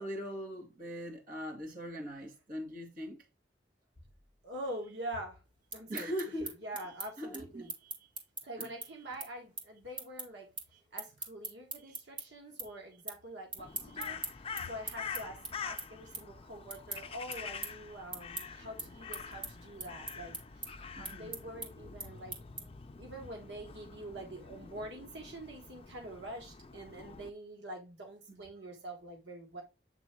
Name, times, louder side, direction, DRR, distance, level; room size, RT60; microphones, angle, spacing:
voice 1, 0.0-3.2 5.9-6.5 7.2-7.9 8.6-8.7 11.8-12.0 21.0-21.3 28.3-28.5, equal, 55° right, 2.3 m, -41 dB
voice 2, 4.4-5.4 5.7-6.1 6.4-7.7 8.4-10.5 10.9-20.7 21.0-22.7 23.0-29.6, right 1 dB, 85° right, 1.4 m, -45 dB
sound 1, 5.5-12.2 12.6-13.2 13.5-22.9, right 2 dB, 30° right, 1.9 m, -42 dB
Crow, 13.6-27.3, left 6 dB, 35° left, 0.5 m, -46 dB
8.2 x 3.4 x 4.4 m
head